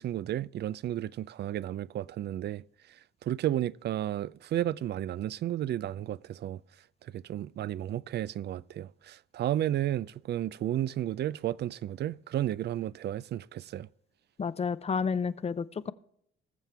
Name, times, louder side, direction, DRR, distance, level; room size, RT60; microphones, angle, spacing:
voice 1, 0.0-6.6 7.0-13.9, right 12 dB, 60° right, 0.4 m, -33 dB
voice 2, 14.4-15.9, left 5 dB, 30° left, 0.6 m, -30 dB
19.5 x 7.3 x 3.4 m
cardioid pair, 90°, 20 cm